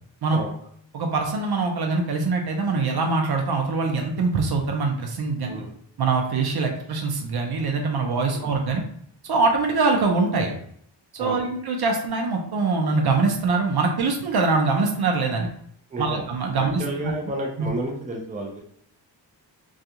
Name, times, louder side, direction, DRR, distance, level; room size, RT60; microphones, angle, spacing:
voice 1, 0.9-5.6 6.0-8.8 9.2-10.5 11.1-15.5 16.0-17.1 17.6-17.7, right 3 dB, 60° right, 2 dB, 0.6 m, -23 dB
voice 2, 15.9-16.3 16.6-18.6, right 1 dB, 20° right, -1 dB, 0.5 m, -31 dB
2.3 x 2.3 x 2.8 m, 0.66 s
wide cardioid pair, 115°, 44 cm